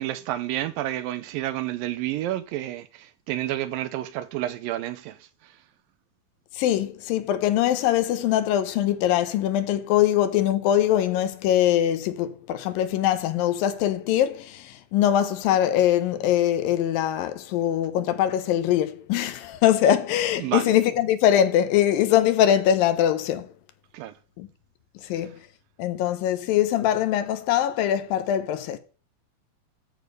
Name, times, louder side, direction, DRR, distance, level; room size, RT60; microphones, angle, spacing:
voice 1, 0.0-5.2 20.4-20.8 23.9-24.1, right 14 dB, 80° right, 2.2 m, -30 dB
voice 2, 6.5-23.5 24.4-24.5 25.0-25.4 25.8-28.8, left 11 dB, 75° left, 2.5 m, -22 dB
13.5 x 4.9 x 5.3 m
omnidirectional pair, 4.2 m